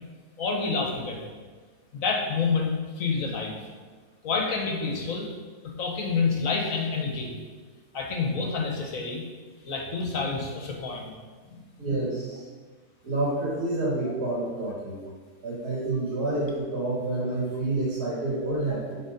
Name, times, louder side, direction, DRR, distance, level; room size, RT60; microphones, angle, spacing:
voice 1, 0.4-1.3 1.9-2.7 3.0-3.6 4.2-5.3 5.8-7.3 7.9-9.2 9.6-11.1 11.5-11.6 14.0-14.1, left 4 dB, 65° left, 0 dB, 1.5 m, -28 dB
voice 2, 11.8-12.5 13.0-15.0 15.4-19.0, right 2 dB, 90° right, -6 dB, 2.3 m, -28 dB
7.2 x 4.2 x 5.1 m, 1.4 s
omnidirectional pair, 1.6 m